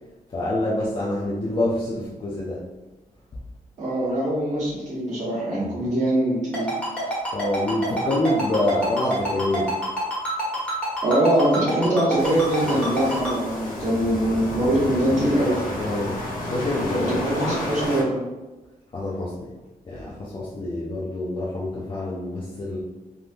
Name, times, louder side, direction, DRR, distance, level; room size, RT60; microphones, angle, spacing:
voice 1, 0.3-2.6 5.7-5.8 7.3-9.7 15.8-16.2 16.5-17.3 18.9-19.5 19.9-22.9, left 1 dB, 35° left, -5 dB, 0.5 m, -26 dB
voice 2, 3.8-6.7 10.5-10.6 11.0-15.6 17.1-18.2, right 1 dB, 55° right, -10 dB, 1.2 m, -23 dB
Ringtone, 6.5-13.3, equal, 10° left, 1.4 m, -27 dB
sound 1, 12.2-18.0, left 1 dB, 80° left, 0.8 m, -31 dB
3.5 x 2.5 x 2.5 m, 1.1 s
wide cardioid pair, 120°, 15 cm